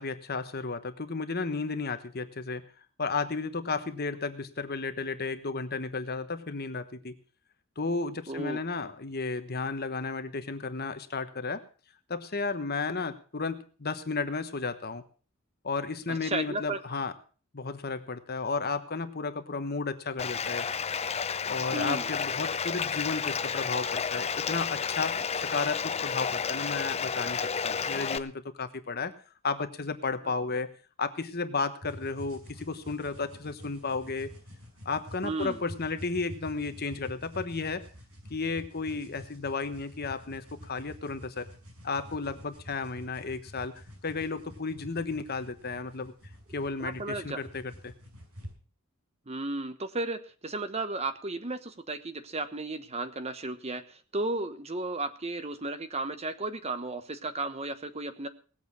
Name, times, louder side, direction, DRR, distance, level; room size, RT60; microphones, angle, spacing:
voice 1, 0.0-2.6 3.0-7.1 7.8-11.6 12.1-15.0 15.6-17.1 17.5-20.7 21.4-28.3 28.6-29.1 29.4-30.7 31.0-34.3 34.8-37.8 38.3-41.5 41.8-43.7 44.0-46.1 46.5-47.9, left 4 dB, 45° left, 10 dB, 1.2 m, -33 dB
voice 2, 8.3-8.6 16.1-16.8 21.7-22.1 35.2-35.6 46.8-47.4 49.3-58.3, right 2 dB, 30° right, 11 dB, 1.1 m, -34 dB
Bathtub (filling or washing), 20.2-28.2, left 6 dB, 30° left, 0.6 m, -31 dB
sound 1, 31.8-48.5, equal, 80° right, 6.8 m, -48 dB
19.0 x 8.0 x 6.2 m, 0.40 s
head